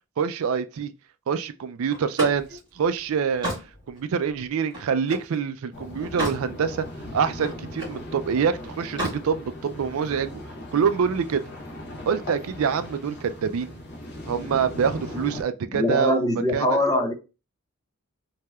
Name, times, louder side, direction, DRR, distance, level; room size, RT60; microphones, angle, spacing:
voice 1, 0.2-0.9 1.3-3.5 3.9-6.9 7.1-10.4 10.7-11.4 12.1-13.8 14.3-16.8, right 6 dB, 70° right, 0.4 m, -25 dB
Slam, 1.9-5.3 5.8-6.5 6.9-8.0 8.8-9.2, equal, 20° right, 1.8 m, -33 dB
sound 1, 5.7-15.4, left 1 dB, 50° left, 0.8 m, -38 dB
voice 2, 15.7-17.1, left 2 dB, 15° left, 0.5 m, -23 dB
3.3 x 2.8 x 2.3 m
head